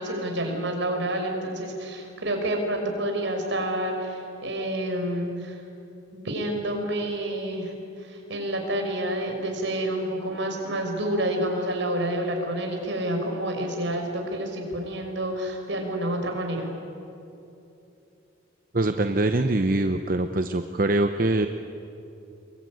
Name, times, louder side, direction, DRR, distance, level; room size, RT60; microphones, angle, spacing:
voice 1, 0.0-5.6 6.1-7.7 8.0-16.7, right 1 dB, 70° right, 3 dB, 5.6 m, -29 dB
voice 2, 18.7-21.5, right 2 dB, 45° right, 8 dB, 0.8 m, -23 dB
28.0 x 23.0 x 9.3 m, 2.8 s
head